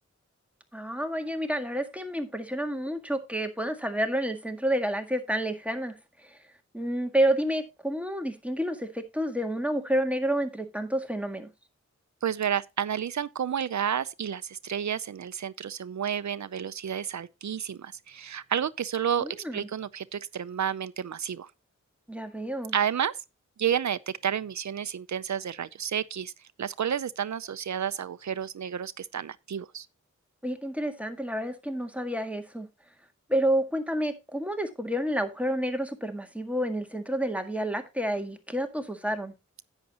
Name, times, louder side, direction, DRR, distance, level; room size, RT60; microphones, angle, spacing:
voice 1, 0.7-6.4 6.7-11.5 19.2-19.7 22.1-22.8 30.4-32.7 33.3-39.3, right 1 dB, 5° right, 1.7 m, -29 dB
voice 2, 12.2-21.5 22.7-23.1 23.6-26.3 26.6-29.9, right 8 dB, 75° right, 0.6 m, -31 dB
10.5 x 9.1 x 2.9 m
wide cardioid pair, 65°, 29 cm